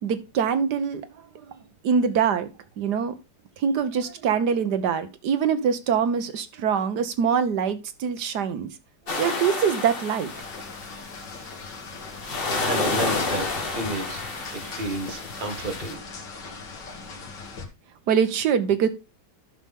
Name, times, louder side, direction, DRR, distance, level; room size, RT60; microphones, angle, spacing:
voice 1, 0.0-1.0 1.8-2.5 2.8-3.1 3.6-8.7 9.2-10.3 18.1-18.9, right 7 dB, 70° right, 1.5 m, -24 dB
sound 1, 9.1-11.3 11.8-15.9, left 3 dB, 35° left, 1.5 m, -30 dB
sound 2, 10.3-17.7, left 4 dB, 80° left, 2.3 m, -39 dB
voice 2, 11.3-11.7 12.6-16.0, right 2 dB, 30° right, 1.8 m, -33 dB
12.0 x 5.8 x 3.6 m
omnidirectional pair, 1.9 m